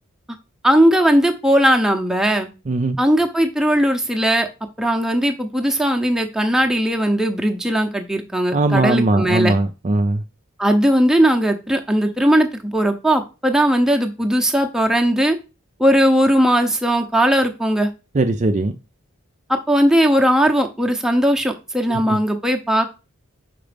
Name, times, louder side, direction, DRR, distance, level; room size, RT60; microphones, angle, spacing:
voice 1, 0.6-2.5 3.0-4.5 4.8-9.5 10.6-15.4 15.8-17.9 19.5-22.9, equal, 5° right, 0.8 m, -18 dB
voice 2, 2.7-3.0 8.5-10.2 18.1-18.7 21.9-22.2, right 2 dB, 35° right, 0.5 m, -19 dB
5.9 x 5.2 x 5.1 m
head